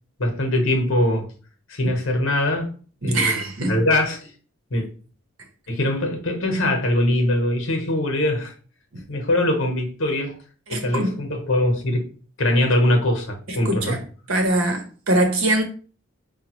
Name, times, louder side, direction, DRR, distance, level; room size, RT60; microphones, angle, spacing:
voice 1, 0.2-1.3 1.7-2.7 3.0-4.3 4.7-4.9 5.7-8.5 9.1-10.4 10.7-12.0 12.4-14.0, left 1 dB, 60° left, 0.9 m, -22 dB
voice 2, 3.0-3.8 8.9-9.0 10.7-11.1 13.5-14.0 14.3-15.6, right 1 dB, 75° right, 0.9 m, -22 dB
5.1 x 2.2 x 2.9 m
head